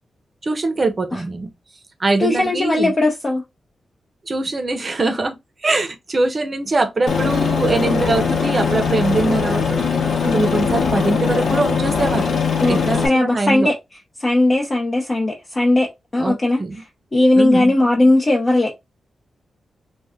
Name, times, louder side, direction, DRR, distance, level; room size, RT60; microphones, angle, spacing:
voice 1, 0.4-1.5 2.0-2.9 4.3-5.4 5.6-10.0 10.3-12.3 12.7-13.7 16.2-16.8 17.4-17.7, right 2 dB, 30° right, 0.8 m, -22 dB
voice 2, 2.2-3.4 10.2-10.4 12.6-13.7 14.2-16.8 17.1-18.7, left 2 dB, 30° left, 0.8 m, -18 dB
Aircraft, 7.1-13.1, left 5 dB, 75° left, 1.0 m, -20 dB
3.3 x 2.4 x 3.6 m
wide cardioid pair, 135°, 0 cm